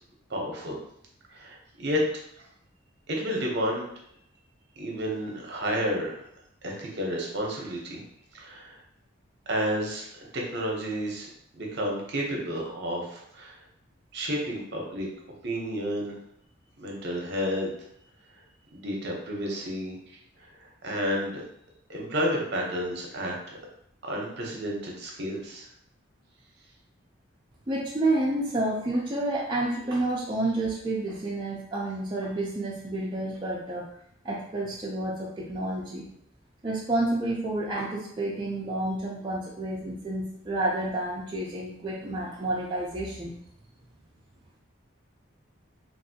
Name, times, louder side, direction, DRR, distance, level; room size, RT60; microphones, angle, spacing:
voice 1, 0.3-0.8 1.3-2.0 2.4-2.5 3.1-3.9 4.8-6.2 6.6-8.0 8.3-8.8 9.5-11.3 11.6-13.6 14.1-15.1 15.4-16.1 16.8-17.7 18.7-19.9 20.4-21.4 21.9-23.6 24.0-25.7, equal, 55° right, -1 dB, 0.7 m, -31 dB
voice 2, 27.7-33.8 34.2-36.1 36.6-43.4, right 2 dB, 20° right, -6 dB, 0.4 m, -29 dB
3.0 x 2.6 x 2.7 m, 0.71 s
head